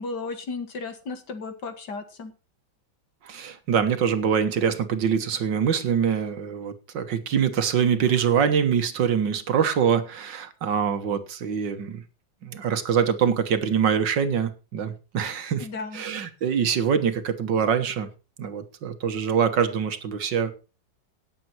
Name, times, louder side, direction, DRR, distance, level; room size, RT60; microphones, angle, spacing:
voice 1, 0.0-2.3 15.6-16.0, left 4 dB, 60° left, 8 dB, 2.3 m, -34 dB
voice 2, 3.2-12.0 12.4-15.7 15.9-18.1 18.4-20.5, right 7 dB, 70° right, 9 dB, 1.9 m, -24 dB
17.5 x 7.8 x 4.4 m, 0.32 s
omnidirectional pair, 2.1 m